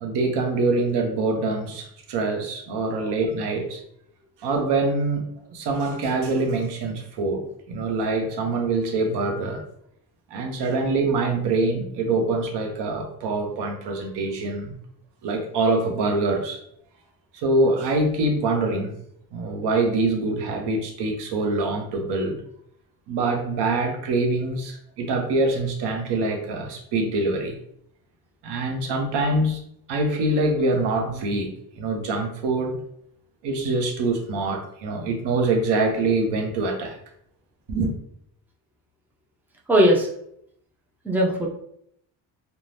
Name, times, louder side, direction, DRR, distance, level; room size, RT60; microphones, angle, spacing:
voice 1, 0.0-3.8 4.4-9.6 10.3-14.8 15.2-16.6 17.3-18.9 19.3-22.4 23.1-27.6 28.4-29.6 29.9-32.8 33.4-37.0 37.7-37.9, right 2 dB, 80° right, 0.8 m, -24 dB
voice 2, 2.9-3.2 39.7-40.1 41.0-41.5, equal, 5° right, 0.3 m, -20 dB
3.2 x 2.2 x 2.6 m
cardioid pair, 165°, 41 cm